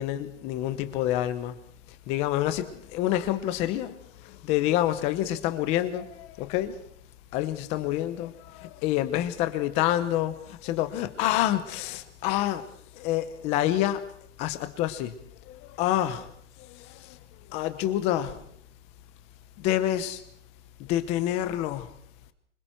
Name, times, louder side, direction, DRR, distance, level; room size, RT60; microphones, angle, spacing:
voice 1, 0.0-1.6 2.1-6.9 7.3-12.7 13.0-14.1 14.4-15.1 15.5-16.3 16.6-17.2 17.5-18.5 19.6-20.2 20.8-21.9, left 13 dB, 20° left, 0.9 m, -28 dB
25.5 x 25.5 x 4.5 m
supercardioid pair, 180°, 35 cm